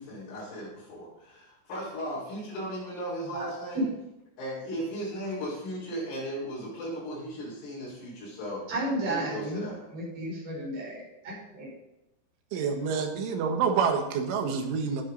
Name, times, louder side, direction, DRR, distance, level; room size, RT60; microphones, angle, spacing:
voice 1, 0.0-3.9 4.4-8.7 9.0-9.9, equal, 85° left, -7 dB, 7.9 m, -36 dB
voice 2, 8.7-9.7 9.9-11.7, right 1 dB, 50° right, -7 dB, 8.3 m, -33 dB
voice 3, 12.5-15.0, right 6 dB, 80° right, 4 dB, 4.0 m, -27 dB
19.5 x 9.1 x 4.0 m, 0.90 s
omnidirectional pair, 5.6 m